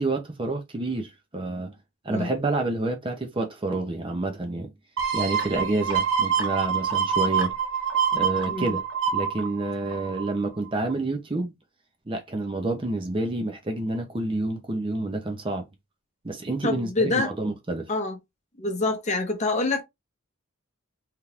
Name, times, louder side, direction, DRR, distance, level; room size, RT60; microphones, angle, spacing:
voice 1, 0.0-1.7 2.0-4.7 5.1-7.5 8.1-8.8 9.1-11.5 12.1-15.6 16.2-17.9, right 2 dB, 25° right, 0.6 m, -28 dB
sound 1, 5.0-10.5 10.9-11.0, right 7 dB, 65° right, 0.9 m, -26 dB
voice 2, 8.5-8.8 16.6-17.3 17.9-18.2 18.6-19.8, left 3 dB, 35° left, 0.8 m, -26 dB
3.6 x 2.9 x 2.4 m
head